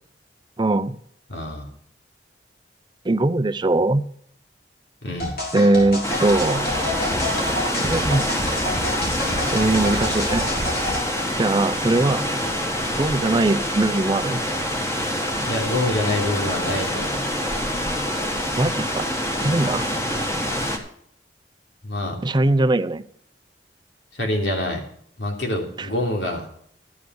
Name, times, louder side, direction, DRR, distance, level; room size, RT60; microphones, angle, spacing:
voice 1, 0.6-1.0 3.0-4.0 5.5-6.7 7.8-8.2 9.5-10.4 11.4-12.3 13.0-14.4 18.5-19.1 19.4-19.9 22.2-23.0 25.8-25.9, right 2 dB, 25° right, 12 dB, 0.6 m, -20 dB
voice 2, 1.3-1.7 5.0-5.4 15.4-17.3 21.8-22.2 24.1-24.8 25.2-26.5, left 1 dB, 85° left, 1 dB, 3.3 m, -26 dB
sound 1, 5.2-11.0, left 1 dB, 60° left, 3.5 m, -28 dB
sound 2, 6.0-20.8, equal, 15° left, 1.7 m, -26 dB
12.5 x 9.3 x 4.7 m, 0.65 s
head